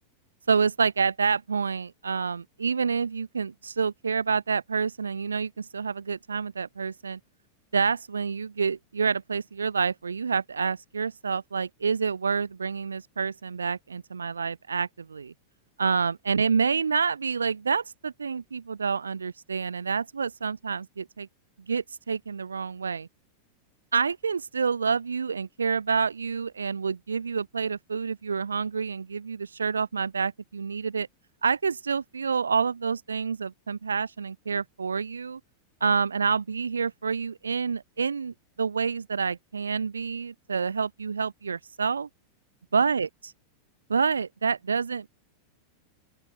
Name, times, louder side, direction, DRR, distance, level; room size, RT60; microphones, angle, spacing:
voice 1, 0.5-7.2 7.7-15.3 15.8-21.3 21.7-23.1 23.9-31.1 31.4-35.4 35.8-42.1 42.7-43.3 43.9-45.1, right 5 dB, 75° right, 1.6 m, -28 dB
open air
figure-of-eight pair, 90°, 0 cm